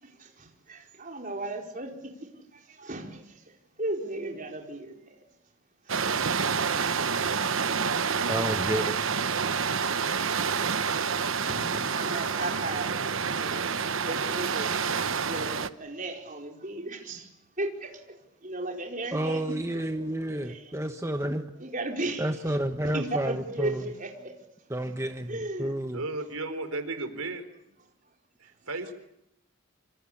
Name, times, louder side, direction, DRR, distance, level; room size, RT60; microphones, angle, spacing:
voice 1, 0.0-3.5 3.8-5.2 11.4-13.0 13.4-13.7 14.0-15.0 15.2-17.3 17.6-19.8 20.1-20.7 21.6-22.3 22.8-24.3 25.3-25.7, right 2 dB, 35° right, 4.8 m, -36 dB
sound 1, 5.9-15.7, right 6 dB, 65° right, 1.0 m, -28 dB
voice 2, 8.3-9.0 19.1-21.5 22.2-23.8 24.7-26.0, right 1 dB, 15° right, 1.1 m, -30 dB
voice 3, 25.9-27.4 28.7-28.9, right 2 dB, 80° right, 4.0 m, -33 dB
26.5 x 26.0 x 8.7 m
head